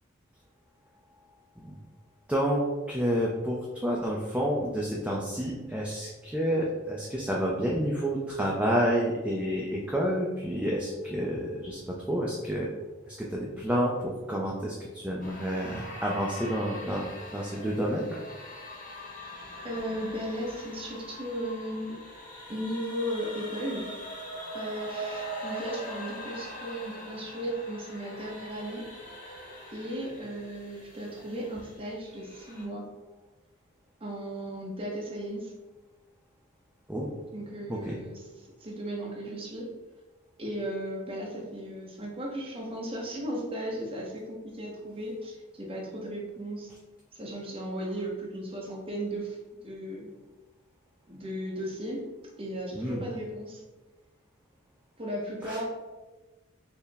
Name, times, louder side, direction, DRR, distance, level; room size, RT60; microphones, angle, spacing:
voice 1, 2.3-2.6 2.9-12.7 13.1-18.2 36.9-37.1 37.7-38.0 52.7-53.0 55.4-55.6, equal, 5° right, -3 dB, 0.3 m, -29 dB
sound 1, 15.2-32.6, right 1 dB, 40° left, 0.8 m, -42 dB
voice 2, 19.6-22.0 22.5-23.9 24.5-28.8 29.7-32.9 34.0-35.5 37.3-38.2 38.6-39.7 40.4-46.7 47.1-49.4 49.6-50.1 51.1-52.1 52.4-53.6 55.0-55.6, equal, 30° right, -2 dB, 0.8 m, -36 dB
4.4 x 2.0 x 3.4 m, 1.2 s
head